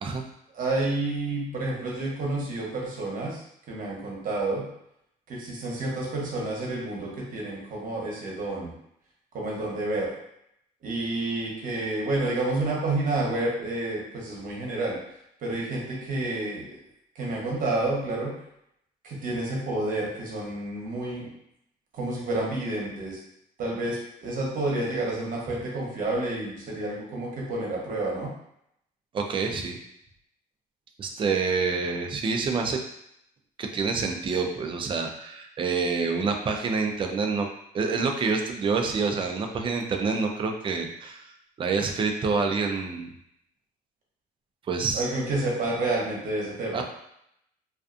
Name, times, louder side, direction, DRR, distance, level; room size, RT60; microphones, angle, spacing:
voice 1, 0.5-3.4 3.7-4.7 5.3-8.7 9.3-10.1 10.8-15.0 15.4-16.7 17.2-18.3 19.0-21.3 21.9-23.2 23.6-28.3 44.9-46.8, right 2 dB, 50° right, -3 dB, 0.9 m, -29 dB
voice 2, 29.1-29.8 31.0-32.8 33.6-37.5 37.7-41.2 41.6-43.1 44.7-45.0 46.7-46.8, right 4 dB, 30° right, 4 dB, 0.4 m, -27 dB
2.5 x 2.3 x 2.5 m, 0.76 s
cardioid pair, 110°, 17 cm